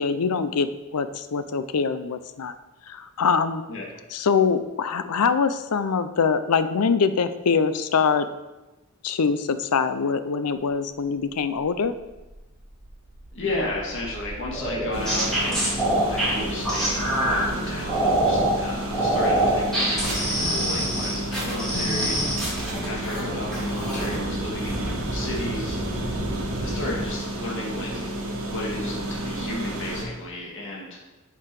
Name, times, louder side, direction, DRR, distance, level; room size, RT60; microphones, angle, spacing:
voice 1, 0.0-2.6 2.9-3.6 4.1-8.3 9.0-11.9 21.7-22.1, left 5 dB, 85° left, 12 dB, 0.5 m, -24 dB
sound 1, 11.3-27.1, right 1 dB, 85° right, 1.3 m, -38 dB
voice 2, 13.3-15.7 16.0-28.0 28.5-31.0, left 2 dB, 60° left, -4 dB, 1.9 m, -34 dB
sound 2, 14.5-17.4 17.9-18.5 18.9-23.2 23.5-24.2 24.5-24.9, right 1 dB, ahead, 3.1 m, -24 dB
sound 3, 14.9-30.0, right 1 dB, 65° right, 1.6 m, -32 dB
7.4 x 7.0 x 4.8 m, 1.1 s
head